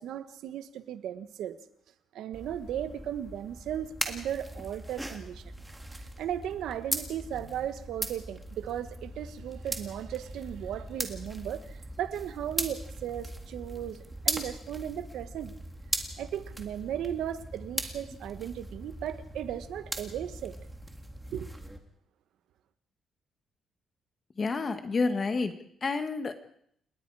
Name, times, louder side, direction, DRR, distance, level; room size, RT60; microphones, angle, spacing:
voice 1, 0.0-1.6 2.1-5.5 6.2-14.0 14.2-15.5 16.2-20.5 21.3-21.5, right 10 dB, 85° right, 11 dB, 1.4 m, -36 dB
sound 1, 2.3-21.8, right 1 dB, 10° right, 1.9 m, -39 dB
voice 2, 24.4-25.5 25.8-26.3, left 4 dB, 30° left, 8 dB, 1.6 m, -29 dB
30.0 x 19.0 x 4.9 m, 0.68 s
cardioid pair, 160°, 0 cm